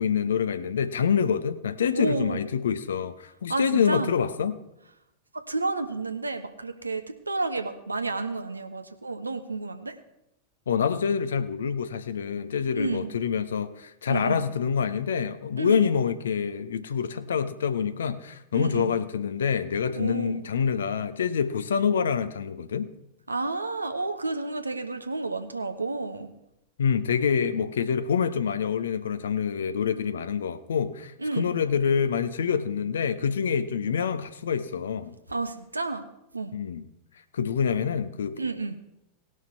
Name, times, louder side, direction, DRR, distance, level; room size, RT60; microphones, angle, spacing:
voice 1, 0.0-4.6 10.7-22.9 26.8-35.2 36.5-36.8 37.3-38.4, left 7 dB, 65° left, 0.8 m, -26 dB
voice 2, 1.9-2.4 3.5-4.1 5.3-10.0 12.7-13.1 14.1-14.4 15.6-15.9 18.5-18.9 20.0-20.4 23.3-26.3 31.2-31.5 35.3-36.0 36.3-36.5 38.4-38.8, right 3 dB, 80° right, 1.0 m, -30 dB
19.0 x 6.3 x 4.5 m
figure-of-eight pair, 90°, 0 cm